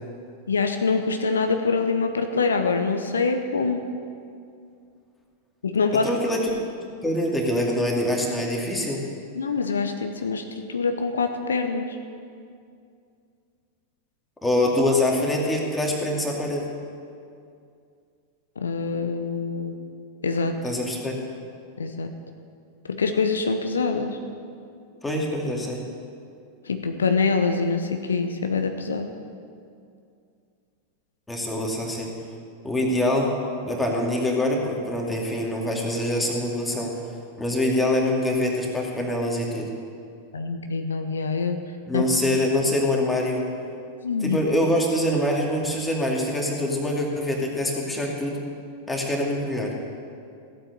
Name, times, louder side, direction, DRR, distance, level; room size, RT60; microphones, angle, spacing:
voice 1, 0.5-3.8 5.6-6.1 9.4-12.0 18.6-19.7 20.2-20.6 21.8-22.1 22.9-24.2 26.7-29.1 40.3-41.6 41.9-42.0 44.0-44.4, left 4 dB, 70° left, 7 dB, 0.7 m, -25 dB
voice 2, 6.0-6.4 7.0-9.0 14.4-16.6 20.6-21.2 25.0-25.8 31.3-32.1 32.6-33.3 33.6-36.9 37.4-39.7 41.9-43.4 44.2-48.4 48.9-49.7, left 1 dB, 10° left, -1 dB, 2.5 m, -24 dB
15.5 x 8.8 x 6.8 m, 2.4 s
figure-of-eight pair, 90°, 0 cm